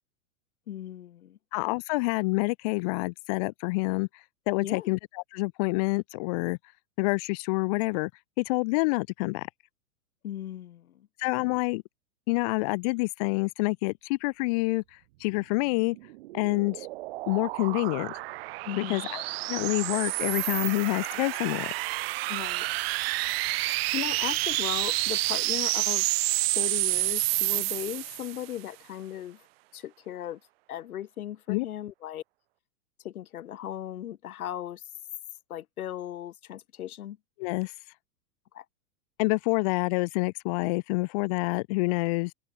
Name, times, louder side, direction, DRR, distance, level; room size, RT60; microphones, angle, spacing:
voice 1, 0.7-1.4 4.6-4.9 10.2-11.1 18.6-19.1 22.3-22.7 23.9-26.2 26.5-29.5 29.7-30.4 30.7-32.2 33.0-34.8 35.5-37.2 38.5-38.6, left 11 dB, 75° left, 6.2 m, -37 dB
voice 2, 1.5-6.6 7.0-8.1 8.4-9.5 11.2-11.8 12.3-16.0 16.3-16.9 17.3-18.1 18.8-19.2 19.5-21.7 31.5-31.6 37.4-37.7 39.2-42.3, left 27 dB, 25° left, 0.9 m, -27 dB
sound 1, 15.9-28.5, right 20 dB, 45° right, 5.8 m, -29 dB
open air
supercardioid pair, 170°, 44 cm